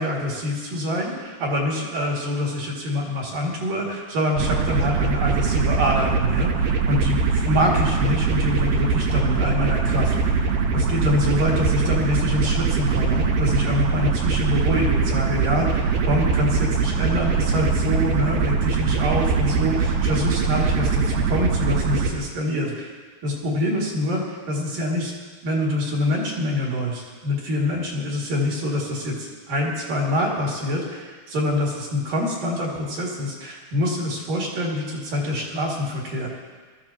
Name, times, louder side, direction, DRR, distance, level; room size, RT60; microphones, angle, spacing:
voice 1, 0.0-22.9 23.2-25.1 25.4-36.3, left 1 dB, 60° right, -3 dB, 3.9 m, -25 dB
sound 1, 4.4-22.1, right 5 dB, 80° right, 2.8 m, -22 dB
20.5 x 13.5 x 2.9 m, 1.5 s
omnidirectional pair, 4.4 m